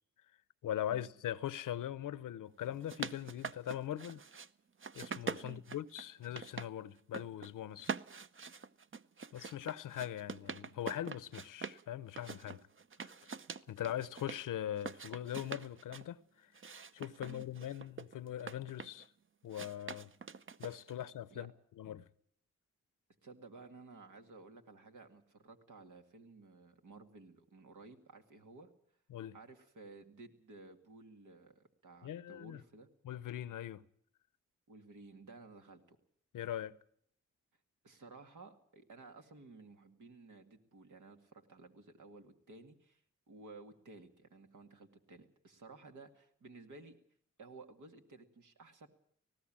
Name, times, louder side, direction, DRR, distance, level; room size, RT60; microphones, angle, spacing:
voice 1, 0.6-4.2 5.0-7.9 9.3-12.7 13.0-13.1 13.7-16.5 16.9-19.1 19.4-20.1 20.6-21.5 21.8-22.1 29.1-29.4 32.0-32.6 33.0-33.8 36.3-36.7, left 11 dB, 90° left, 0.7 m, -41 dB
sound 1, 2.6-4.5 4.8-6.7 7.0-7.5 7.8-11.8 12.2-14.4 14.8-16.1 16.5-19.1 19.5-21.0, right 5 dB, 40° right, 0.8 m, -44 dB
voice 2, 23.2-28.7 29.3-32.9 34.7-36.0 37.8-43.0 43.3-47.0 47.4-48.9, right 3 dB, 75° right, 2.1 m, -55 dB
19.0 x 16.0 x 8.8 m
supercardioid pair, 45°, 31 cm